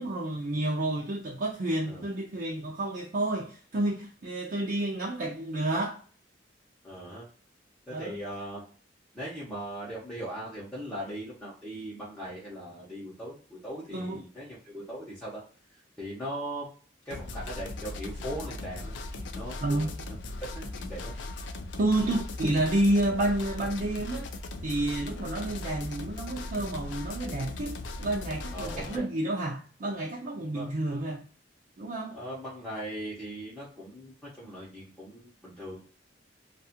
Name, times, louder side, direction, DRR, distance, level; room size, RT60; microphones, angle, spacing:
voice 1, 0.0-6.0 7.9-8.2 13.9-14.2 19.6-19.9 21.8-24.3 24.6-31.2 31.8-32.2, right 1 dB, 50° right, 0.5 m, -30 dB
voice 2, 6.8-7.3 7.9-8.6 9.1-15.4 16.0-16.7 17.1-20.2 20.5-21.1 28.5-29.1 30.5-30.7 32.1-35.9, right 1 dB, 5° left, 0.8 m, -39 dB
sound 1, 17.1-29.0, left 2 dB, 70° left, 0.4 m, -38 dB
2.5 x 2.4 x 2.7 m
head